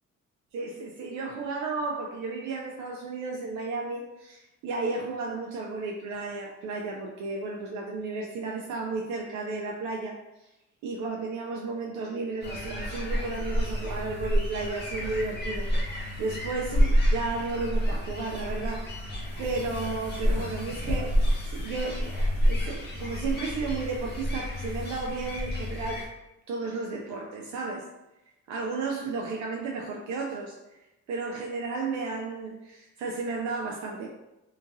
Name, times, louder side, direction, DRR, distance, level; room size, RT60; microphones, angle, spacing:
voice 1, 0.5-10.5 10.8-18.9 19.4-21.1 21.5-26.0 26.5-27.9 28.5-30.6 31.1-34.1, right 3 dB, 70° right, -1 dB, 0.4 m, -33 dB
sound 1, 12.4-26.1, equal, 35° left, 0.9 m, -29 dB
2.9 x 2.5 x 2.5 m, 0.95 s
cardioid pair, 90°, 30 cm